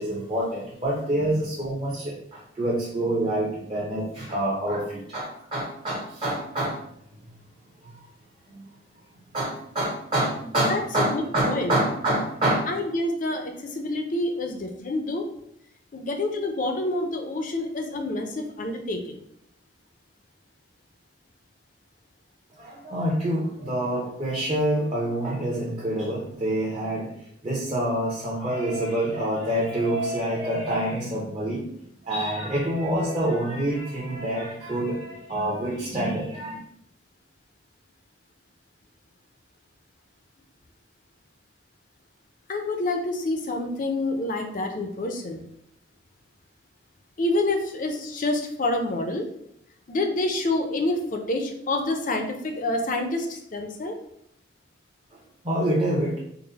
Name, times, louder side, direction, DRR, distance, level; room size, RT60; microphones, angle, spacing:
voice 1, 0.0-6.8 8.5-8.6 9.3-12.7 22.6-27.1 27.4-31.6 32.0-36.6 55.4-56.2, right 1 dB, 30° right, -5 dB, 0.7 m, -27 dB
voice 2, 10.7-11.7 12.7-15.2 15.9-19.2 42.5-45.4 47.2-49.2 49.9-54.0, left 2 dB, 40° left, 4 dB, 0.5 m, -27 dB
3.9 x 2.1 x 3.9 m, 0.74 s
head